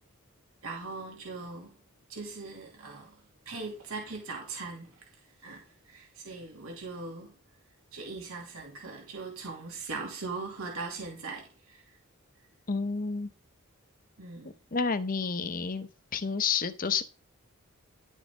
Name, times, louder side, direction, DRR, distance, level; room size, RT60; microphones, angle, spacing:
voice 1, 0.6-1.8 2.1-5.1 5.4-7.3 7.9-11.8 14.2-14.5, right 3 dB, 85° right, 2.7 m, -40 dB
voice 2, 12.7-13.3 14.7-17.0, left 5 dB, 40° left, 0.8 m, -30 dB
11.0 x 7.2 x 3.7 m
head